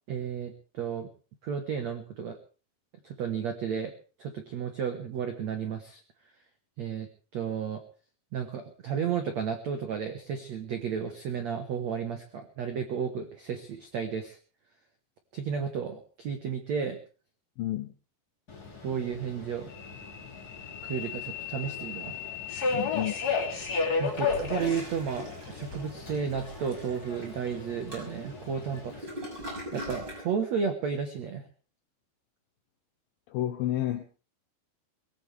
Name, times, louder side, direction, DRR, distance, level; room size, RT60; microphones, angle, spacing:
voice 1, 0.1-1.1 1.4-2.4 3.0-3.9 4.2-6.0 6.8-7.8 8.3-14.4 15.3-17.0 18.8-19.7 20.8-22.3 24.0-29.1 29.7-31.5, right 7 dB, 80° right, 6 dB, 1.5 m, -33 dB
voice 2, 17.6-17.9 22.7-23.1 33.3-34.0, left 13 dB, 80° left, 8 dB, 2.0 m, -30 dB
Subway metro underground, 18.5-29.0, left 5 dB, 25° left, 2.8 m, -34 dB
Toilet flush, 24.1-30.3, equal, 25° right, 6.7 m, -42 dB
22.5 x 16.0 x 3.5 m, 0.36 s
omnidirectional pair, 5.4 m